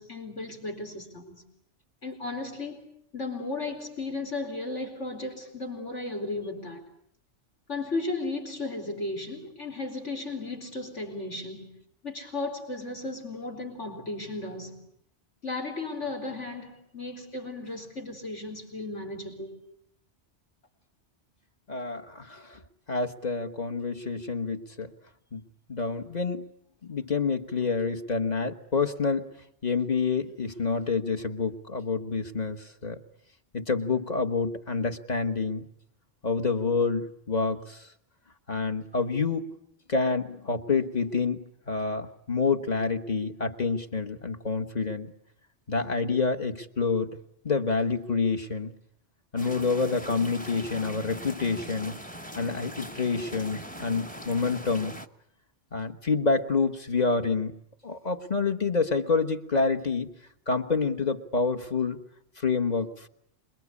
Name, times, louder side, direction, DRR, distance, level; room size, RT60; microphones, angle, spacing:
voice 1, 0.0-1.4 2.0-2.8 3.1-6.8 7.7-11.7 12.0-14.7 15.4-19.6, left 2 dB, 80° left, 4.5 m, -35 dB
voice 2, 21.7-22.6 22.9-24.9 25.3-25.4 25.7-26.5 26.8-29.3 29.6-33.0 33.5-35.7 36.2-37.9 38.5-39.4 39.9-45.1 45.7-47.2 47.4-48.7 49.3-52.0 52.4-55.0 55.7-57.5 57.8-60.1 60.5-62.0 62.4-63.1, left 4 dB, 35° left, 1.5 m, -28 dB
sound 1, 49.4-55.1, equal, 10° left, 1.0 m, -41 dB
27.0 x 22.5 x 8.4 m
omnidirectional pair, 1.2 m